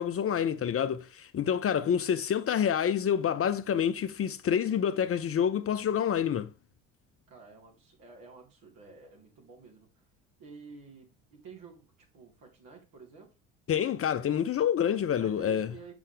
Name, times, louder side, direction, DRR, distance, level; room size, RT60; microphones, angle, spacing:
voice 1, 0.0-6.5 13.7-15.7, left 8 dB, 35° left, 0.7 m, -28 dB
voice 2, 7.3-10.0 10.4-13.3 15.2-15.9, right 5 dB, 60° right, 4.0 m, -51 dB
7.2 x 6.9 x 3.4 m
hypercardioid pair, 70°, 38 cm